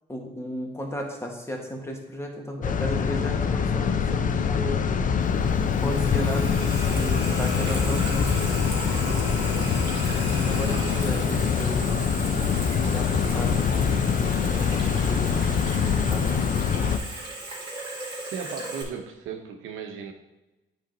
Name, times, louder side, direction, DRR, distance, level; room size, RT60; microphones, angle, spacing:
voice 1, 0.1-5.0 5.8-8.6 9.7-11.9 12.7-13.9 14.2-16.4, equal, 15° left, 1 dB, 1.3 m, -34 dB
sound 1, 2.6-17.0, left 6 dB, 40° left, 0.5 m, -24 dB
Water tap faucet / Sink (filling or washing), 5.2-18.8, right 2 dB, 25° right, 1.9 m, -37 dB
Wind instrument woodwind instrument, 7.0-11.6, left 2 dB, 70° left, 1.3 m, -39 dB
voice 2, 18.3-20.1, right 7 dB, 85° right, 5 dB, 0.8 m, -36 dB
8.5 x 3.5 x 3.9 m, 1.0 s
cardioid pair, 90°, 20 cm